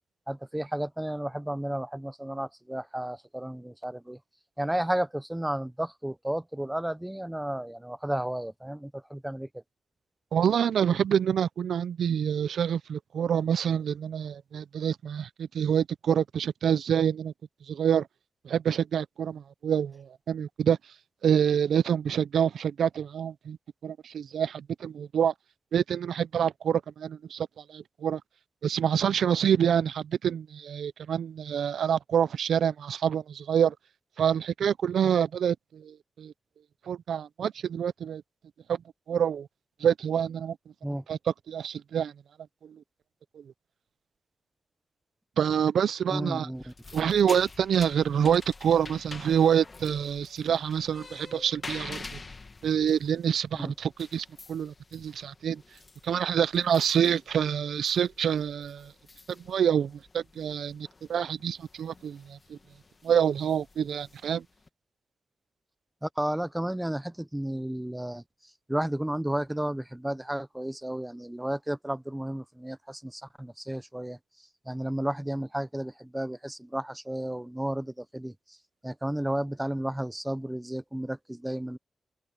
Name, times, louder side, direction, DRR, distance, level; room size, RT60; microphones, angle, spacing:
voice 1, 0.3-4.2 4.6-9.6 40.8-41.0 46.1-46.7 53.5-53.7 66.0-68.2 68.7-74.2 74.7-78.6 78.8-81.8, right 1 dB, 5° right, 0.5 m, -32 dB
voice 2, 10.3-17.3 17.7-18.1 18.4-20.8 21.2-23.6 23.8-25.3 25.7-28.2 28.6-33.7 34.2-36.3 36.9-38.2 38.7-38.8 39.1-39.5 39.8-40.6 41.1-41.2 41.5-42.1 42.6-42.8 43.3-43.4 45.4-46.5 46.9-52.2 52.6-55.6 56.0-58.9 59.3-62.6 63.0-64.4, right 8 dB, 80° right, 0.4 m, -27 dB
sound 1, 46.5-64.7, left 3 dB, 30° left, 1.4 m, -48 dB
open air
wide cardioid pair, 150°, 0 cm